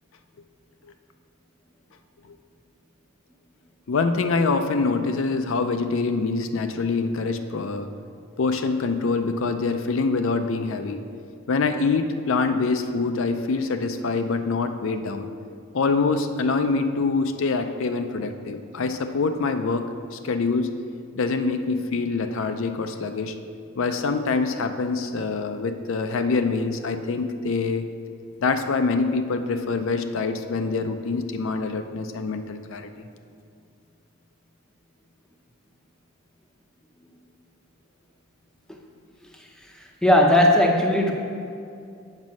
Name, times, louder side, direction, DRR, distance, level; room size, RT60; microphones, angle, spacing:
voice 1, 3.9-7.9 8.4-11.0 11.5-15.3 15.7-20.7 21.2-23.3 23.8-27.9 28.4-32.9, left 4 dB, 65° left, 7 dB, 0.4 m, -25 dB
voice 2, 40.0-41.1, left 1 dB, 5° left, 1 dB, 0.6 m, -17 dB
7.4 x 5.2 x 6.1 m, 2.4 s
head